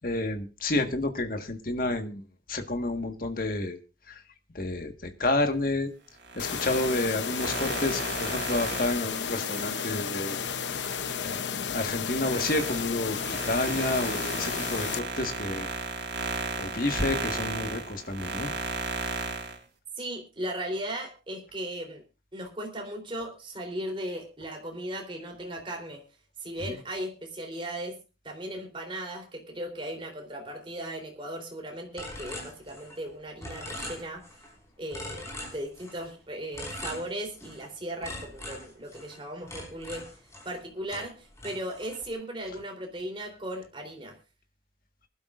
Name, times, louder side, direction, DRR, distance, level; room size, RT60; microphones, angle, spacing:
voice 1, 0.0-2.2 2.5-3.8 4.1-4.2 4.5-5.9 6.3-10.4 11.2-15.7 16.6-18.5 26.7-26.8, left 2 dB, 50° left, 6 dB, 1.6 m, -30 dB
sound 1, 6.2-11.3 11.7-19.6, right 3 dB, 80° right, 3.2 m, -35 dB
sound 2, 6.4-15.0, left 7 dB, 80° left, 0.8 m, -33 dB
voice 2, 20.0-22.0 22.3-26.0 26.4-28.0 28.2-34.2 34.8-40.1 40.4-44.1, right 1 dB, 30° right, 2 dB, 3.5 m, -37 dB
sound 3, 32.0-33.1 33.4-34.5 34.9-36.1 36.5-37.7 38.0-40.6 40.9-42.1, left 1 dB, 15° left, 5.1 m, -41 dB
23.5 x 12.0 x 2.5 m, 0.32 s
head